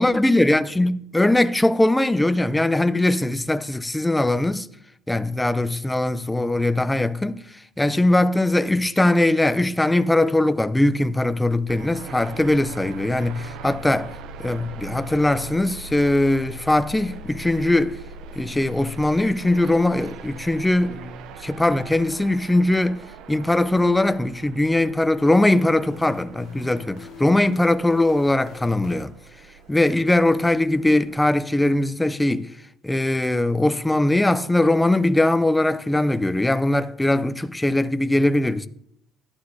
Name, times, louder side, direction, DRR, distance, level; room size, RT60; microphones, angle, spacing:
voice 1, 0.0-4.7 5.1-14.1 14.4-18.0 18.4-23.0 23.3-29.1 29.7-32.5 32.8-38.7, left 1 dB, 5° left, 0.3 m, -21 dB
sound 1, 11.7-31.4, right 4 dB, 60° right, 0.5 m, -41 dB
sound 2, 25.2-29.8, left 8 dB, 45° left, 0.7 m, -44 dB
11.5 x 11.5 x 2.6 m
cardioid pair, 165°, 0 cm